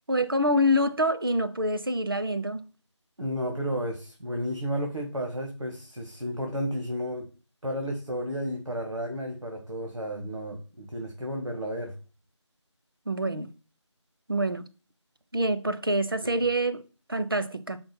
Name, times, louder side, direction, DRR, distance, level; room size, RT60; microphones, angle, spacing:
voice 1, 0.1-2.6 13.1-13.5 14.3-14.6 15.3-16.8 17.1-17.8, equal, 50° right, 0.7 m, -26 dB
voice 2, 3.2-7.3 7.6-11.9 16.2-16.3, equal, 80° right, 1.8 m, -32 dB
5.2 x 4.3 x 6.1 m
figure-of-eight pair, 170°, 16 cm